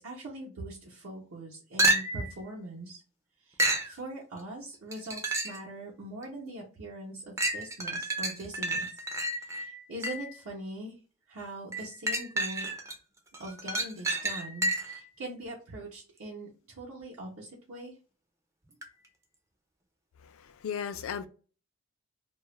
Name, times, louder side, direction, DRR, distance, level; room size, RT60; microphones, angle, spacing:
voice 1, 0.0-3.0 3.4-8.9 9.3-10.9 11.3-12.7 13.4-17.9, right 1 dB, 70° right, 0.7 m, -42 dB
sound 1, 1.8-2.4 3.6-3.9 4.9-5.7 6.2-6.3 7.4-10.4 11.7-13.0 13.3-15.0 18.8-18.9, right 1 dB, 15° right, 0.4 m, -30 dB
voice 2, 20.2-21.3, left 7 dB, 70° left, 0.3 m, -36 dB
2.3 x 2.0 x 3.0 m
head